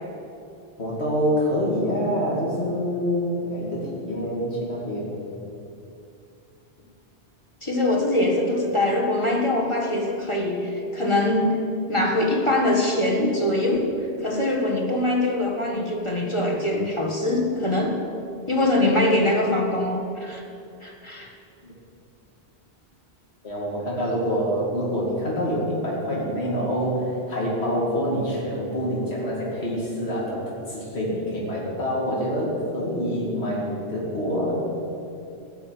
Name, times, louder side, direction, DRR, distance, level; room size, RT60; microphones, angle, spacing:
voice 1, 0.8-5.2 23.4-34.5, equal, 80° left, -5 dB, 2.6 m, -26 dB
voice 2, 7.6-11.6 11.9-13.9 14.2-18.0 18.5-20.4 20.8-21.3, left 1 dB, 30° left, 0 dB, 1.6 m, -23 dB
15.5 x 5.8 x 9.1 m, 2.6 s
omnidirectional pair, 1.1 m